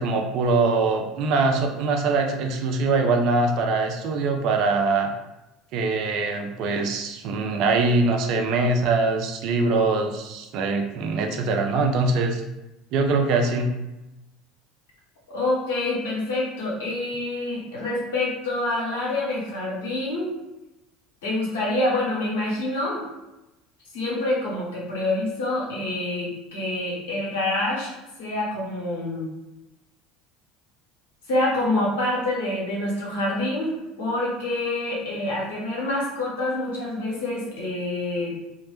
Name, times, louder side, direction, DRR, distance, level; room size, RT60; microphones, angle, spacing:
voice 1, 0.0-5.1 5.7-12.4 12.9-13.7, right 3 dB, 60° right, 3 dB, 0.4 m, -23 dB
voice 2, 15.3-20.3 21.2-23.0 23.9-27.9 28.2-29.3 31.3-33.7 34.0-38.3, left 2 dB, 80° left, -4 dB, 0.8 m, -26 dB
2.0 x 2.0 x 2.9 m, 0.98 s
hypercardioid pair, 80°, 0 cm